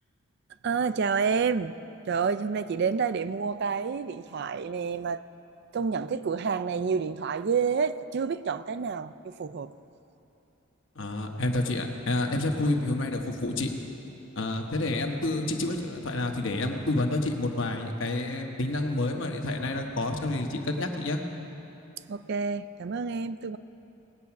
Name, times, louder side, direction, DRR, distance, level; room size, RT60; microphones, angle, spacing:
voice 1, 0.6-1.7 2.1-5.2 5.7-9.7 15.4-15.8 22.1-23.6, right 5 dB, 50° right, 13 dB, 0.3 m, -29 dB
voice 2, 10.9-13.7 14.4-21.2, left 2 dB, 60° left, 3 dB, 1.1 m, -29 dB
19.0 x 8.4 x 5.9 m, 3.0 s
head